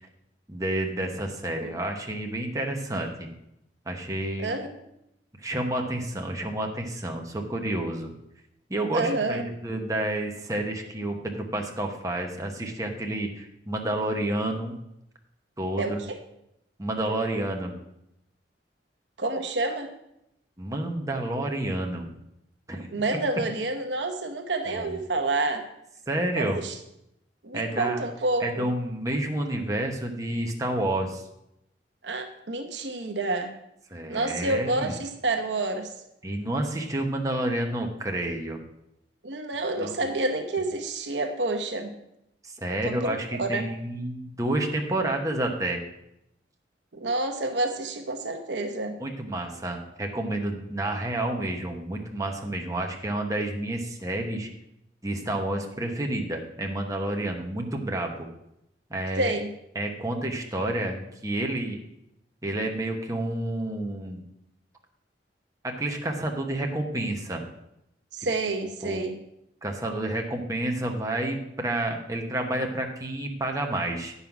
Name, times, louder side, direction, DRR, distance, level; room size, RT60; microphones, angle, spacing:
voice 1, 0.5-3.3 3.9-4.5 5.4-8.1 8.7-14.8 15.6-16.0 16.8-17.8 20.6-22.1 22.7-22.9 24.7-25.0 26.1-26.6 27.5-28.1 28.4-31.2 33.9-35.0 36.2-38.6 39.8-39.9 42.4-45.8 49.0-54.5 55.0-58.3 58.9-59.3 59.7-61.8 62.4-64.2 65.8-67.4 68.6-69.1 69.6-74.1, right 1 dB, 20° right, 2 dB, 1.1 m, -30 dB
voice 2, 8.9-9.4 15.8-16.2 19.2-19.9 22.9-25.7 26.4-26.8 27.4-28.6 32.0-33.5 34.1-35.9 39.2-41.9 42.8-43.7 46.9-48.9 59.1-59.5 68.1-69.2, right 2 dB, 85° right, 6 dB, 1.0 m, -28 dB
9.4 x 5.6 x 6.0 m, 0.81 s
head